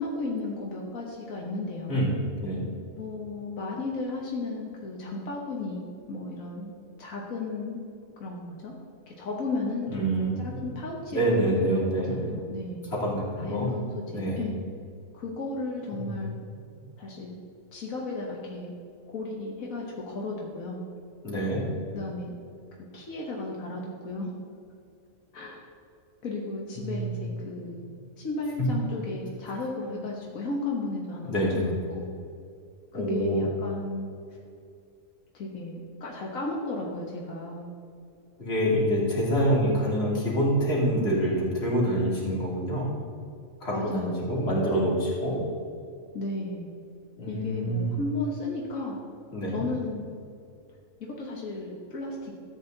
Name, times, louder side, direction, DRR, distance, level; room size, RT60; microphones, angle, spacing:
voice 1, 0.0-2.1 2.9-7.9 8.2-8.8 9.1-12.8 13.4-14.6 15.1-16.4 17.0-17.4 17.7-18.8 19.1-20.8 21.9-22.4 22.9-24.3 25.3-25.6 26.2-27.8 28.2-32.1 32.9-34.1 35.3-37.7 43.7-44.4 46.1-46.8 47.3-49.0 49.5-50.0 51.0-52.3, left 2 dB, 90° left, -3 dB, 1.8 m, -34 dB
voice 2, 1.9-2.6 9.9-10.3 11.1-12.3 12.9-13.7 14.1-14.4 15.9-16.1 16.7-16.8 21.2-21.6 26.8-27.1 29.5-29.6 31.2-31.7 32.9-33.4 38.4-42.8 43.6-45.4 47.2-48.0 49.3-49.6, equal, 50° left, -6 dB, 3.3 m, -26 dB
13.5 x 8.6 x 4.0 m, 2.5 s
omnidirectional pair, 1.4 m